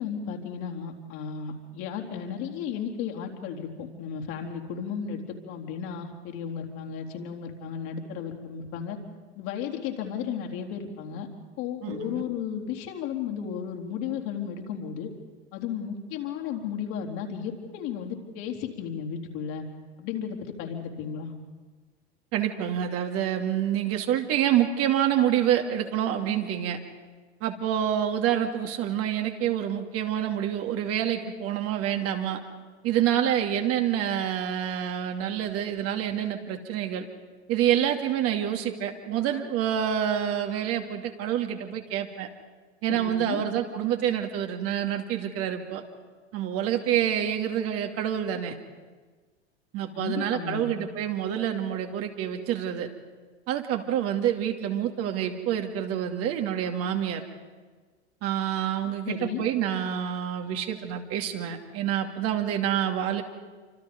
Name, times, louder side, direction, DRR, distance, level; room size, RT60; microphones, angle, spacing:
voice 1, 0.0-9.0 9.4-11.3 11.6-15.1 15.5-19.6 20.0-21.3 42.9-43.4 49.9-50.7 59.1-59.4, left 7 dB, 50° left, 2 dB, 3.9 m, -34 dB
voice 2, 11.8-12.2 22.3-26.8 27.4-32.4 32.8-37.1 37.5-42.3 42.8-45.8 46.3-48.5 49.7-52.9 53.5-57.2 58.2-63.2, right 10 dB, 45° right, 4 dB, 2.6 m, -27 dB
28.5 x 26.0 x 5.4 m, 1.4 s
figure-of-eight pair, 85°, 34 cm